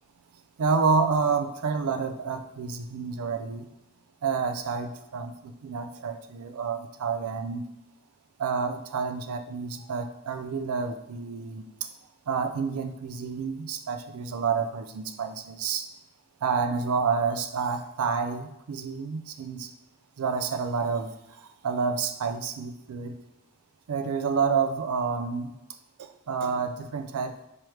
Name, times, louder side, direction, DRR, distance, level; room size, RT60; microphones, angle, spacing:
voice 1, 0.6-3.6 4.2-7.6 8.4-11.9 12.3-15.9 16.4-19.7 20.2-23.2 23.9-25.5 26.0-27.5, right 5 dB, 90° right, 9 dB, 0.4 m, -29 dB
4.9 x 3.0 x 3.1 m, 0.89 s
head